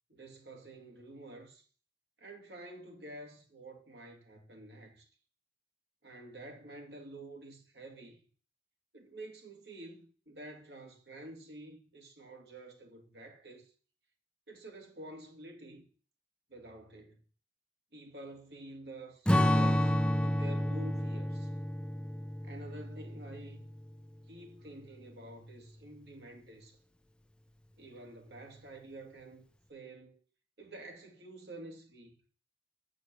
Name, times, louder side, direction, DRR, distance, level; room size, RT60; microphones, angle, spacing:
voice 1, 0.1-1.7 2.2-5.1 6.0-8.2 8.9-13.7 14.5-15.8 16.5-17.2 17.9-21.5 22.4-23.7 24.3-26.8 27.8-29.4 29.7-30.2 30.6-32.1, right 2 dB, 65° right, 2.6 m, -49 dB
Strum, 19.3-23.9, left 1 dB, 5° left, 0.5 m, -30 dB
7.6 x 6.8 x 7.9 m
head